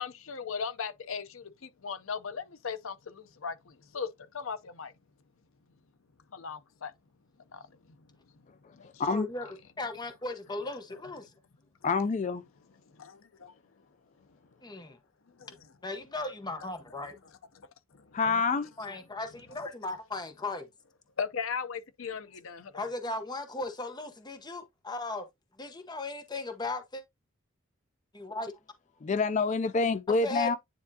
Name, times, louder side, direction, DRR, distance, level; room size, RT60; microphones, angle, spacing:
voice 1, 0.0-4.1 4.3-4.9 6.3-6.9 7.5-7.6 8.7-9.0 12.9-13.5 15.4-15.6 17.9-18.1 21.2-22.7, left 6 dB, 75° left, 0.6 m, -37 dB
voice 2, 9.0-11.3 14.6-15.0 15.8-17.2 18.2-18.4 18.8-20.7 22.7-25.2 25.6-27.0 28.1-28.5 30.2-30.6, left 2 dB, 20° left, 0.9 m, -37 dB
voice 3, 11.8-12.4 18.1-18.7 29.0-30.6, left 4 dB, 35° left, 0.4 m, -27 dB
9.6 x 3.5 x 2.7 m
head